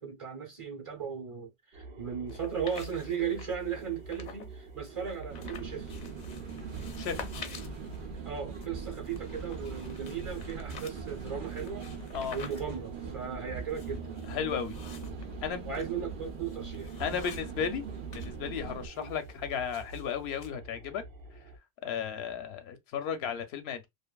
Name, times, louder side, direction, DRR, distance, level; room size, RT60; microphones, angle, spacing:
voice 1, 0.0-5.9 8.2-11.9 12.3-14.2 15.6-16.9 18.9-19.1, right 7 dB, 35° right, 0.9 m, -37 dB
sound 1, 1.7-21.6, right 3 dB, 85° right, 1.0 m, -47 dB
sound 2, 2.3-4.5 4.8-18.3 18.6-20.5, left 6 dB, 55° left, 0.5 m, -49 dB
sound 3, 5.3-18.9, right 5 dB, 60° right, 0.8 m, -41 dB
voice 2, 14.3-14.8 15.4-15.6 17.0-17.8 18.1-21.0 21.8-23.9, left 7 dB, 85° left, 0.8 m, -34 dB
2.6 x 2.5 x 2.2 m
omnidirectional pair, 1.0 m